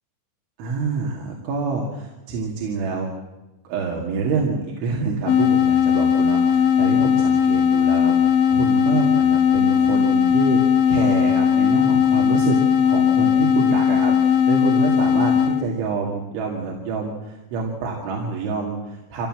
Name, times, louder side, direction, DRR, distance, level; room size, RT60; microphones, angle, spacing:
voice 1, 0.6-3.1 3.6-10.6 10.9-12.6 12.8-19.3, right 4 dB, 75° right, -1 dB, 4.8 m, -27 dB
sound 1, 5.3-15.7, left 7 dB, 80° left, 3.5 m, -18 dB
25.5 x 17.5 x 7.6 m, 1.0 s
omnidirectional pair, 5.5 m